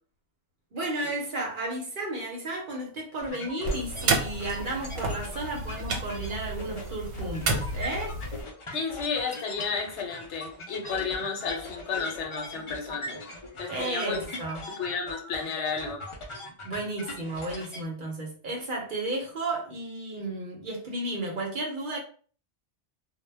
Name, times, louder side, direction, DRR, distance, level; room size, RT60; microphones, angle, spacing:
voice 1, 0.7-8.1 13.7-14.7 16.6-22.0, right 2 dB, 55° right, -1 dB, 0.7 m, -33 dB
sound 1, 3.2-17.8, left 2 dB, 40° left, 0.4 m, -41 dB
sound 2, 3.6-8.4, right 3 dB, 85° right, 1.0 m, -31 dB
voice 2, 8.7-13.2 13.6-14.2 14.8-16.0, left 5 dB, 80° left, 3 dB, 1.0 m, -32 dB
2.1 x 2.1 x 3.3 m, 0.42 s
omnidirectional pair, 1.2 m